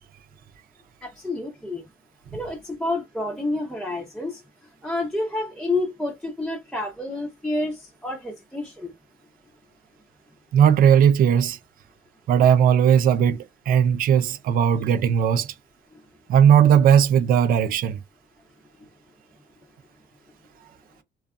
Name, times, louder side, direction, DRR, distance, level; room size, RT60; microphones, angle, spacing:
voice 1, 1.0-1.8 2.3-4.4 4.8-8.9, left 2 dB, 5° left, 0.6 m, -29 dB
voice 2, 10.5-11.6 12.3-15.5 16.3-18.0, right 8 dB, 60° right, 0.5 m, -17 dB
2.6 x 2.4 x 2.3 m
cardioid pair, 110°, 17 cm